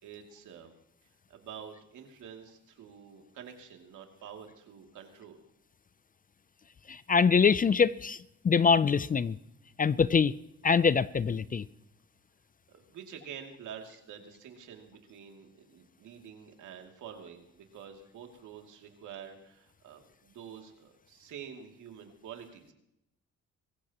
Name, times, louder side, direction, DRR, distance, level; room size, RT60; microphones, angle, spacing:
voice 1, 0.0-0.7 1.3-5.4 12.7-22.7, right 8 dB, 80° right, 2.7 m, -48 dB
voice 2, 6.9-8.2 8.4-9.4 9.8-10.3 10.6-11.6, left 5 dB, 30° left, 0.5 m, -24 dB
24.5 x 15.0 x 3.0 m
cardioid pair, 90°, 30 cm